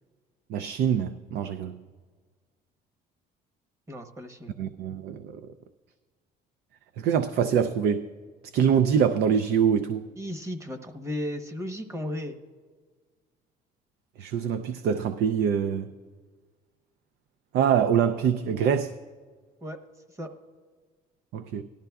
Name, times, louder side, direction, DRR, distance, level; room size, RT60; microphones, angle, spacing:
voice 1, 0.5-1.8 4.6-5.4 7.0-8.1 8.5-10.1 14.2-15.9 17.5-18.9 21.3-21.6, right 7 dB, 75° right, 10 dB, 0.5 m, -24 dB
voice 2, 3.9-4.5 10.2-12.4 19.6-19.8 20.1-20.3, left 1 dB, 15° right, 7 dB, 0.9 m, -35 dB
17.5 x 12.0 x 2.3 m, 1.5 s
cardioid pair, 110°, 17 cm